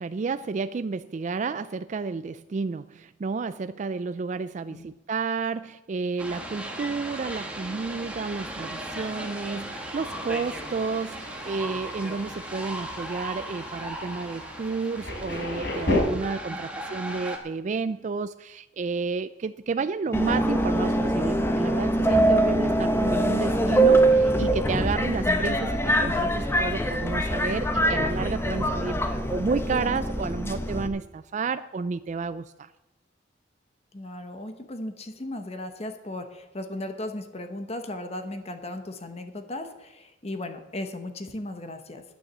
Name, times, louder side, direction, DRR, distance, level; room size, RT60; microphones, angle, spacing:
voice 1, 0.0-32.7, right 4 dB, 40° right, 13 dB, 0.3 m, -31 dB
sound 1, 6.2-17.4, right 1 dB, 5° right, 1.6 m, -37 dB
Thunder, 7.8-16.0, left 2 dB, 60° left, 4.8 m, -35 dB
Subway metro underground, 20.1-30.9, right 1 dB, 15° left, 0.8 m, -23 dB
voice 2, 33.9-42.0, left 1 dB, 35° left, 7 dB, 1.0 m, -36 dB
9.8 x 9.8 x 7.2 m, 0.97 s
head